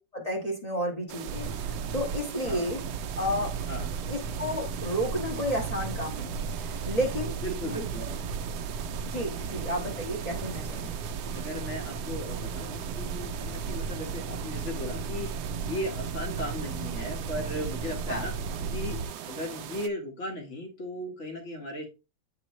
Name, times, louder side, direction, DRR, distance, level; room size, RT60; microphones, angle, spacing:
voice 1, 0.1-2.8 3.1-3.5 4.1-7.4 7.6-8.1 9.0-10.9 18.1-18.3, equal, 20° left, 2 dB, 1.6 m, -32 dB
sound 1, 1.1-19.9, right 10 dB, 70° right, 1.1 m, -40 dB
sound 2, 1.3-19.1, right 5 dB, 90° right, 1.6 m, -35 dB
voice 2, 7.4-8.0 9.4-9.6 11.3-18.3 18.7-21.9, left 1 dB, 40° left, 3 dB, 1.9 m, -37 dB
9.3 x 3.9 x 3.1 m, 0.30 s
omnidirectional pair, 2.0 m